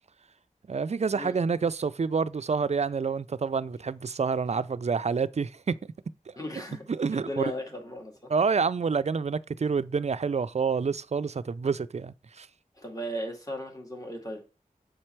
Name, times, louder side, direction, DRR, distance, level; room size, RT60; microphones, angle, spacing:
voice 1, 0.7-5.7 6.3-6.4 6.9-7.5 8.3-12.5, right 5 dB, 50° right, 0.4 m, -28 dB
voice 2, 6.4-6.8 7.1-8.3 12.8-14.4, equal, 25° left, 2.2 m, -36 dB
6.6 x 4.4 x 4.4 m
wide cardioid pair, 45°, 15 cm